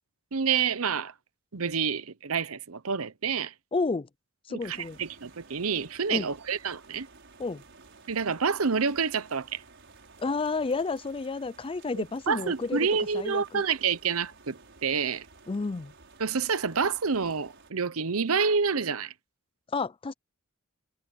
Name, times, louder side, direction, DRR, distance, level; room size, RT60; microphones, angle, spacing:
voice 1, 0.3-1.1 1.5-3.5 4.5-7.1 8.1-9.6 12.0-15.2 16.2-19.1, right 5 dB, 85° right, 0.9 m, -28 dB
voice 2, 3.7-4.1 4.5-5.0 6.1-6.3 7.4-7.6 10.2-12.9 13.1-13.6 15.5-15.9 19.7-20.1, left 3 dB, 25° left, 0.4 m, -31 dB
sound 1, 4.6-17.7, right 4 dB, 60° right, 6.1 m, -54 dB
head